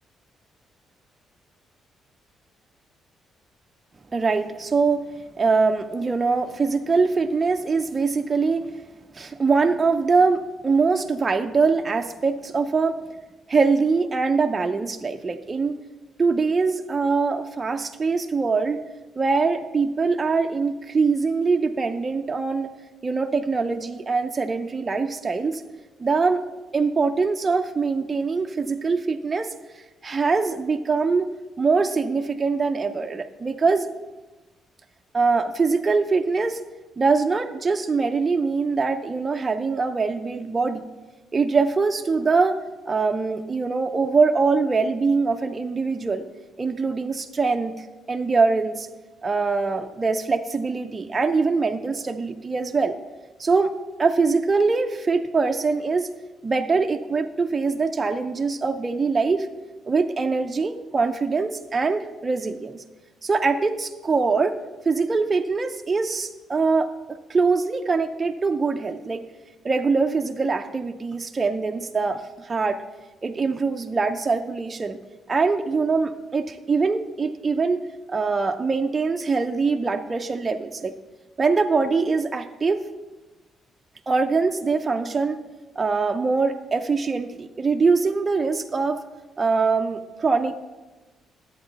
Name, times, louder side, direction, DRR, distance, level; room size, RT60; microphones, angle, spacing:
voice 1, 4.1-5.1 5.4-8.6 9.1-13.0 13.5-15.7 16.2-18.8 19.2-22.7 23.0-25.6 26.0-26.4 26.7-31.3 31.6-33.9 35.1-36.6 37.0-40.9 41.3-46.2 46.6-48.9 49.2-53.0 53.4-56.1 56.4-59.5 59.9-62.8 63.2-64.6 64.9-66.9 67.3-69.2 69.6-72.8 73.2-75.0 75.3-80.9 81.4-82.8 84.1-85.4 85.8-89.0 89.4-90.6, right 4 dB, 30° right, 5 dB, 0.4 m, -23 dB
11.0 x 8.0 x 4.0 m, 1.2 s
cardioid pair, 90°, 0 cm